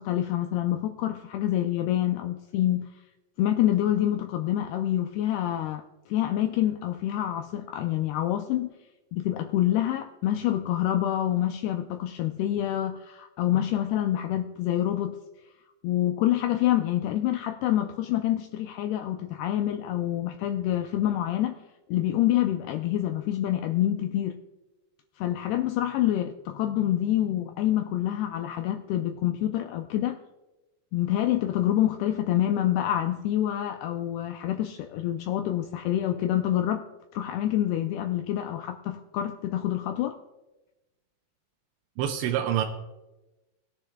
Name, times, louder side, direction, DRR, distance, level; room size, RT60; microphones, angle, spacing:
voice 1, 0.0-2.9 3.4-8.7 9.1-15.2 15.8-21.6 21.9-24.4 25.2-30.2 30.9-36.8 37.1-40.2, left 12 dB, 90° left, 6 dB, 2.2 m, -27 dB
voice 2, 42.0-42.6, right 10 dB, 85° right, 2 dB, 3.0 m, -26 dB
19.0 x 10.0 x 2.3 m, 1.0 s
omnidirectional pair, 5.1 m